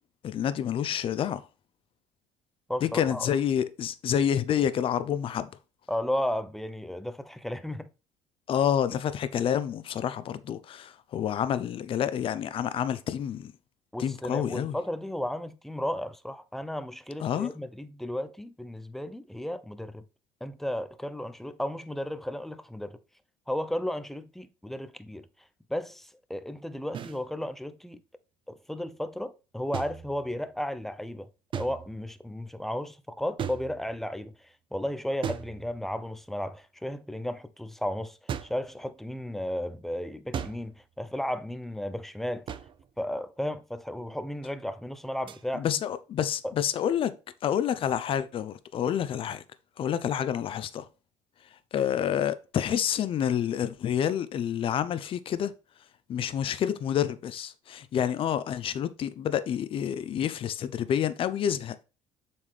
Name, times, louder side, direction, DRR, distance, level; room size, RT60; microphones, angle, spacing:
voice 1, 0.2-1.4 2.8-5.5 8.5-13.5 14.0-14.8 17.2-17.5 45.5-47.2 47.4-49.4 49.8-50.8 51.7-55.5 56.1-61.8, left 9 dB, 50° left, 0.7 m, -28 dB
voice 2, 2.7-3.3 5.9-7.9 13.9-20.0 20.4-23.0 23.5-25.3 25.7-28.0 28.5-31.3 31.5-42.5 43.0-45.7 46.4-46.5, left 1 dB, ahead, 0.7 m, -34 dB
sound 1, 26.9-27.2 29.7-30.6 31.5-32.1 33.4-34.1 35.2-36.1 38.3-38.7 40.3-40.8 42.5-42.9 45.3-45.4, right 8 dB, 45° right, 0.7 m, -37 dB
7.2 x 4.4 x 3.4 m
supercardioid pair, 95°, 12 cm